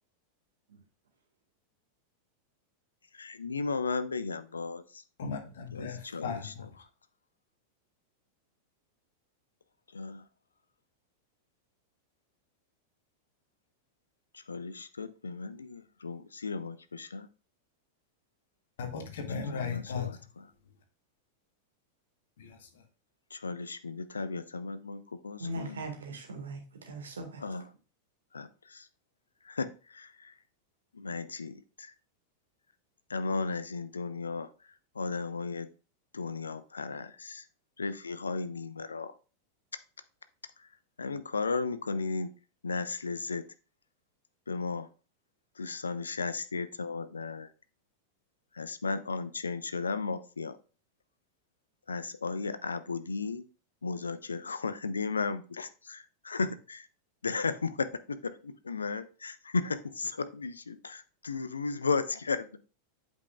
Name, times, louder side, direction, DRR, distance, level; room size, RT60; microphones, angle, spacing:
voice 1, 3.1-5.0 5.7-6.5 9.9-10.2 14.3-17.3 19.5-20.4 23.3-25.8 27.4-27.7 28.3-28.9 29.4-30.3 30.9-31.9 33.1-34.5 35.0-35.7 36.1-37.4 37.8-39.1 41.0-42.3 42.6-43.4 44.5-44.9 45.6-47.5 48.5-50.6 51.9-53.4 53.8-56.9 57.2-57.9 58.2-62.6, left 4 dB, 75° left, 13 dB, 0.5 m, -35 dB
voice 2, 5.2-6.6 18.8-20.2 22.4-22.7, left 5 dB, 60° left, 6 dB, 1.2 m, -37 dB
voice 3, 25.4-27.4, right 2 dB, 70° right, 3 dB, 1.6 m, -39 dB
8.1 x 5.4 x 2.3 m, 0.35 s
figure-of-eight pair, 90°, 0 cm